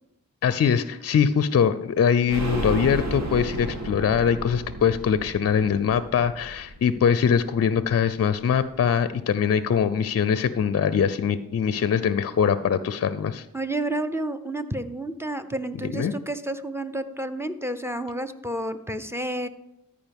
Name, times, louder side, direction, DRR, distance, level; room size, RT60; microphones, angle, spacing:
voice 1, 0.4-13.5 15.9-16.1, left 7 dB, 45° left, 14 dB, 0.5 m, -22 dB
sound 1, 2.3-7.9 8.2-8.3 8.6-8.7, right 1 dB, 55° right, 1.4 m, -33 dB
voice 2, 13.5-19.5, right 1 dB, 5° right, 10 dB, 0.7 m, -30 dB
13.5 x 4.9 x 3.5 m, 0.87 s
cardioid pair, 50°, 34 cm